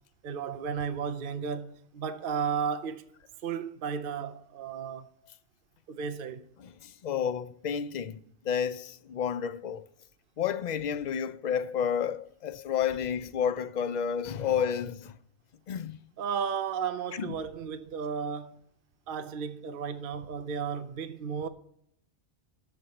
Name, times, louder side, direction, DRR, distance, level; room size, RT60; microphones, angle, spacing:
voice 1, 0.2-3.1 3.4-5.1 5.9-6.4 16.2-18.6 19.1-21.5, right 6 dB, 55° right, 0.9 m, -34 dB
voice 2, 6.6-8.2 8.4-9.8 10.4-15.2 15.7-16.0 17.2-17.3, left 8 dB, 50° left, 0.5 m, -31 dB
12.5 x 4.7 x 7.7 m
omnidirectional pair, 1.2 m